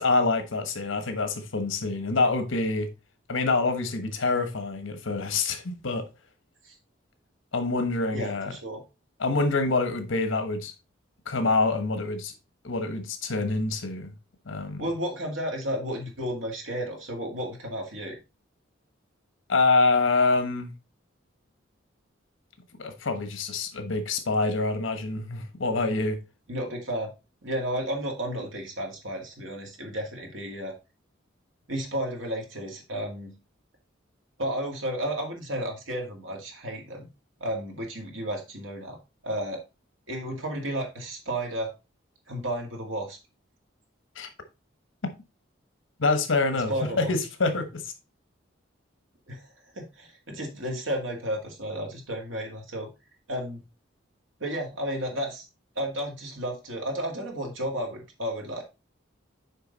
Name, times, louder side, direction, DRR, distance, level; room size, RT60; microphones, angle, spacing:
voice 1, 0.0-2.9 3.3-6.1 7.5-8.5 9.2-10.7 11.3-12.3 12.6-14.1 14.5-14.9 19.5-20.7 22.8-26.2 44.2-44.3 46.0-47.9, left 3 dB, 85° left, 1.2 m, -26 dB
voice 2, 8.1-8.8 14.8-18.2 26.5-27.1 27.4-30.7 31.7-33.3 34.4-37.1 37.4-39.0 39.2-39.6 40.1-41.7 42.3-43.2 46.5-47.1 49.3-49.4 49.7-52.9 53.3-53.6 54.4-55.4 55.8-58.6, equal, 80° right, 2.2 m, -32 dB
6.7 x 4.8 x 4.0 m
head